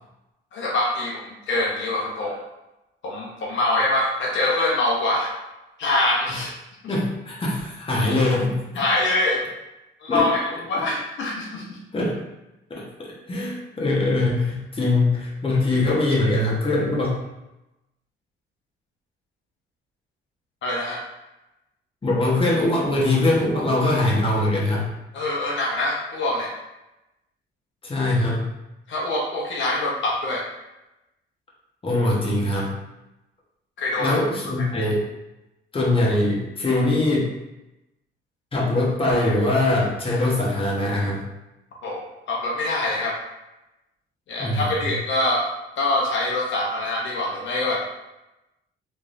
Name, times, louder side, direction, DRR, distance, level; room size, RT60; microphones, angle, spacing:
voice 1, 0.5-2.4 3.0-5.3 5.8-6.5 6.8-6.9 8.7-9.4 10.0-10.4 10.7-11.6 20.6-21.0 25.1-26.5 28.9-30.5 33.8-34.2 41.8-43.2 44.3-45.5 45.8-47.9, left 2 dB, 70° left, -3 dB, 0.8 m, -24 dB
voice 2, 6.9-8.6 10.1-10.3 11.9-12.2 12.7-17.2 22.0-24.9 27.8-28.5 31.8-32.7 34.0-35.1 35.7-37.3 38.5-41.2 44.4-44.7, left 2 dB, 25° left, -4 dB, 1.2 m, -22 dB
3.6 x 3.2 x 2.6 m, 0.95 s
cardioid pair, 90°, 20 cm